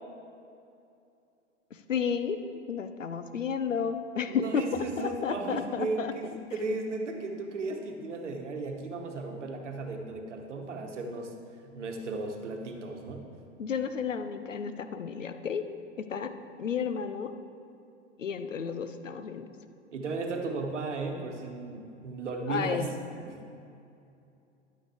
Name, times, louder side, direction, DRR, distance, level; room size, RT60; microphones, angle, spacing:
voice 1, 1.7-2.4 2.7-6.1 13.6-15.6 16.0-16.3 16.6-17.3 18.2-19.5 22.5-22.9, left 6 dB, 85° left, 9 dB, 0.6 m, -32 dB
voice 2, 4.3-11.3 11.6-13.2 19.9-22.9 23.3-23.4, right 3 dB, 70° right, 4 dB, 1.2 m, -35 dB
11.0 x 9.1 x 3.4 m, 2.6 s
figure-of-eight pair, 90°, 37 cm